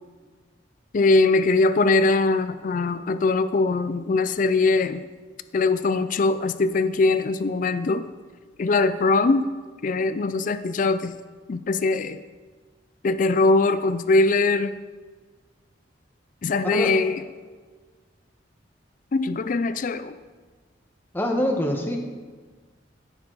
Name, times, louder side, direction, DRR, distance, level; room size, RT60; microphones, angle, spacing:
voice 1, 0.9-5.0 5.5-8.0 8.6-9.5 9.8-11.1 11.5-12.2 13.0-14.7 16.4-17.2 19.1-20.2, left 3 dB, 45° left, 12 dB, 0.4 m, -21 dB
voice 2, 21.1-22.0, left 1 dB, 10° left, 1 dB, 1.2 m, -24 dB
16.0 x 7.1 x 4.0 m, 1.4 s
head